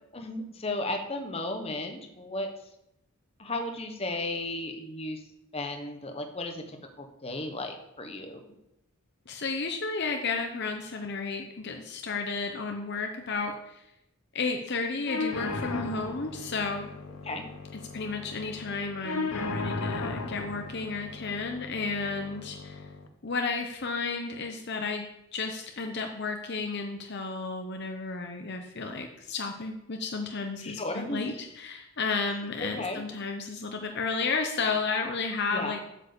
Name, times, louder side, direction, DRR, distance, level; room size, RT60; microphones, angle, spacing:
voice 1, 0.1-2.5 3.4-5.2 5.5-8.4 17.2-17.4 30.6-31.4 32.6-33.0 35.5-35.8, left 2 dB, 25° left, 5 dB, 1.1 m, -34 dB
voice 2, 9.3-13.9 14.3-16.9 17.9-22.9 23.2-35.8, left 4 dB, 50° left, 4 dB, 0.8 m, -32 dB
sound 1, 15.1-23.1, left 3 dB, 80° left, 1.0 m, -36 dB
8.2 x 7.4 x 6.8 m, 0.85 s
head